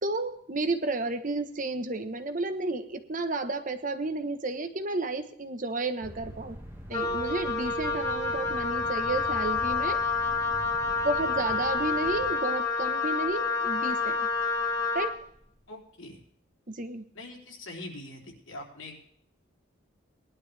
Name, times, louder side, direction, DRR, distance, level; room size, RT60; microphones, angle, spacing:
voice 1, 0.0-6.6 6.9-10.0 11.0-14.3 14.9-15.1 16.7-17.0, right 2 dB, 40° right, 8 dB, 1.1 m, -32 dB
sound 1, 6.0-12.3, equal, 10° right, 1.9 m, -44 dB
Wind instrument woodwind instrument, 6.9-15.2, left 4 dB, 20° left, 1.9 m, -28 dB
voice 2, 15.7-16.2 17.1-19.0, left 1 dB, 85° left, 0 dB, 3.5 m, -43 dB
19.5 x 11.5 x 3.4 m, 0.67 s
head